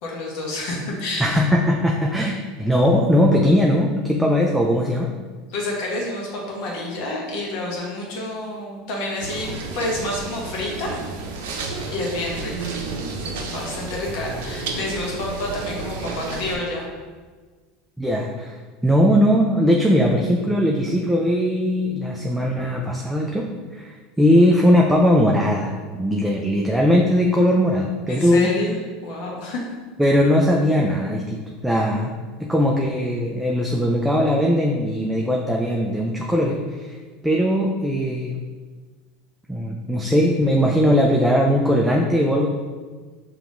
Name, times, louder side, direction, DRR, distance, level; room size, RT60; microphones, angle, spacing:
voice 1, 0.0-1.4 5.5-11.0 11.5-12.7 13.2-16.9 28.1-28.8 29.0-29.7, left 2 dB, 65° left, -2 dB, 1.1 m, -29 dB
voice 2, 1.2-5.1 18.0-28.5 30.0-32.1 32.4-37.0 37.2-38.4 39.5-42.5, equal, 5° right, -1 dB, 0.4 m, -19 dB
sound 1, 9.2-16.6, right 3 dB, 85° right, 0.6 m, -31 dB
5.2 x 2.9 x 2.5 m, 1.4 s
supercardioid pair, 115°, 0 cm